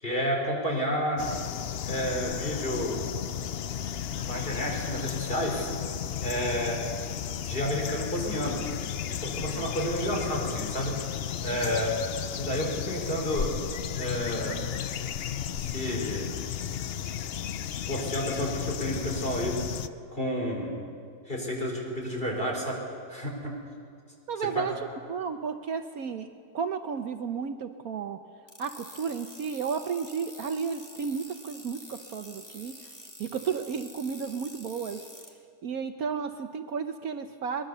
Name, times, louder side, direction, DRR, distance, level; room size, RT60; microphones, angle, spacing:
voice 1, 0.0-1.2 1.9-3.0 4.2-5.7 6.2-6.8 7.5-8.6 9.1-11.0 11.4-12.0 12.4-13.5 14.0-14.6 15.6-16.3 17.9-19.6 20.1-20.7 21.3-22.8 23.1-23.6 24.5-24.7, equal, 30° left, -1 dB, 4.8 m, -30 dB
sound 1, 1.2-19.9, left 9 dB, 70° left, 0.6 m, -34 dB
voice 2, 24.3-24.8 25.1-26.3 26.5-28.2 28.6-35.0 35.6-37.7, right 6 dB, 65° right, 7 dB, 1.2 m, -33 dB
sound 2, 28.5-35.3, equal, 10° left, 2.5 m, -47 dB
23.0 x 21.0 x 6.9 m, 2.2 s
omnidirectional pair, 1.8 m